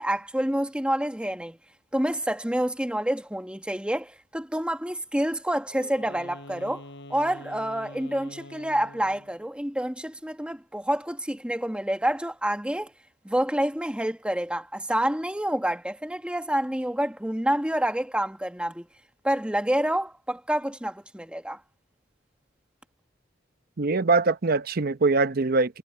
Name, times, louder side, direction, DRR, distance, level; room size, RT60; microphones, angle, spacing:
voice 1, 0.0-1.6 1.9-6.8 7.1-12.9 13.2-18.9 19.2-21.6, right 1 dB, 5° right, 1.4 m, -28 dB
Wind instrument woodwind instrument, 5.7-9.4, left 1 dB, 65° left, 7.0 m, -45 dB
voice 2, 23.8-25.8, right 3 dB, 55° right, 0.8 m, -23 dB
head